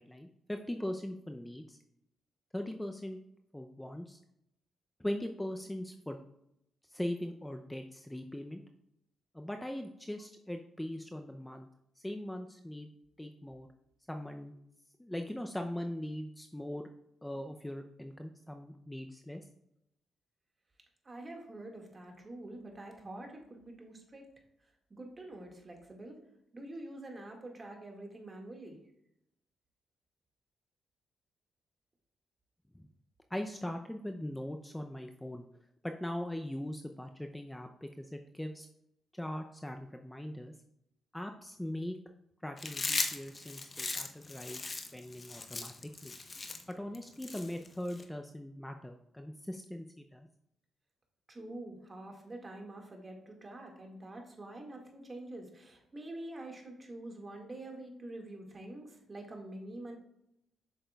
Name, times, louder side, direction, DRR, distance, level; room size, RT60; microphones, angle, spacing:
voice 1, 0.0-1.8 2.5-3.2 3.5-4.2 5.0-6.2 6.9-8.6 9.3-11.7 12.0-12.9 13.2-13.7 14.1-14.5 15.0-16.9 17.2-19.4 32.7-32.9 33.3-35.5 35.8-38.7 39.1-40.5 41.1-42.0 42.4-46.1 46.8-50.3, left 1 dB, 10° left, 5 dB, 0.5 m, -40 dB
voice 2, 21.1-24.2 24.9-26.2 26.5-28.8 51.3-60.0, right 1 dB, 35° right, 1 dB, 1.9 m, -46 dB
Chewing mastication, 42.6-48.0, left 3 dB, 35° left, 0.9 m, -38 dB
7.7 x 6.4 x 2.3 m, 0.78 s
cardioid pair, 70°, 0 cm